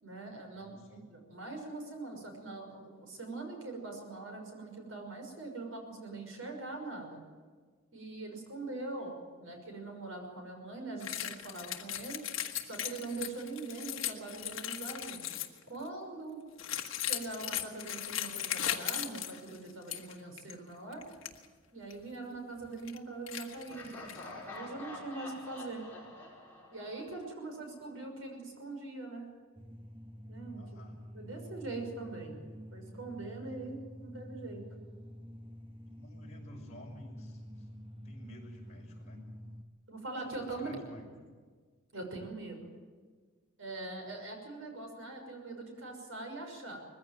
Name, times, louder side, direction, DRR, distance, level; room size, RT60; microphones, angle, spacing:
voice 1, 0.0-0.8 1.1-7.2 7.9-12.2 12.6-16.4 17.0-21.0 21.7-23.9 24.4-25.8 26.7-29.2 30.3-30.6 31.1-32.4 32.7-34.6 39.9-40.7 41.9-42.7 43.6-46.8, right 3 dB, 70° right, 3 dB, 5.9 m, -42 dB
voice 2, 0.5-1.0 30.6-31.0 35.9-37.7 38.0-39.2 40.5-41.3, equal, 35° left, -1 dB, 5.9 m, -52 dB
sound 1, 11.0-15.6 16.6-20.1 20.4-20.5 20.9-21.3 21.9-22.0 22.6-23.0 23.3-24.3, left 11 dB, 65° left, 1.5 m, -38 dB
Laughter, 23.7-27.6, left 2 dB, 10° left, 5.7 m, -47 dB
sound 2, 29.6-39.6, equal, 25° right, 1.1 m, -48 dB
21.0 x 15.5 x 9.3 m, 1.5 s
head